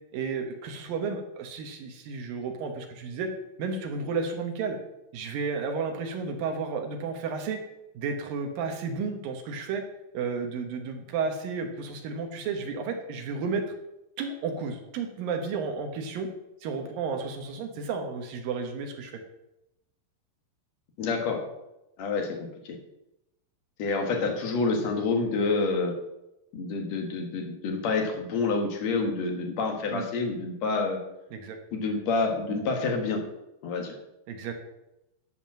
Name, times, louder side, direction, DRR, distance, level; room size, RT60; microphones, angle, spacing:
voice 1, 0.1-3.3 3.6-4.8 5.1-7.6 7.9-9.8 10.1-13.6 14.2-16.3 16.6-19.1 29.9-30.0 31.3-31.6 34.3-34.5, right 5 dB, 65° right, 4 dB, 2.3 m, -32 dB
voice 2, 21.0-21.4 22.0-22.8 23.8-26.0 26.5-31.0 31.7-33.2 33.6-33.9, left 4 dB, 60° left, 3 dB, 1.8 m, -28 dB
13.0 x 5.3 x 7.4 m, 0.91 s
omnidirectional pair, 5.3 m